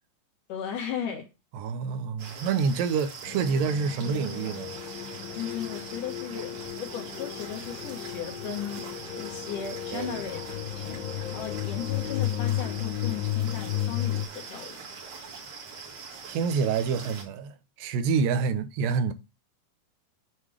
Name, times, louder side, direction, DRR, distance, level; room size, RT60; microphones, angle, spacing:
voice 1, 0.5-1.3 5.3-8.8 9.2-11.0 11.3-14.8, left 8 dB, 70° left, 2.9 m, -36 dB
voice 2, 1.5-4.8 9.9-10.1 16.3-19.1, right 5 dB, 80° right, 2.3 m, -27 dB
sound 1, 2.2-17.2, right 5 dB, 60° right, 2.6 m, -43 dB
sound 2, 3.3-14.3, left 12 dB, 90° left, 2.6 m, -33 dB
7.6 x 3.2 x 4.8 m
omnidirectional pair, 4.0 m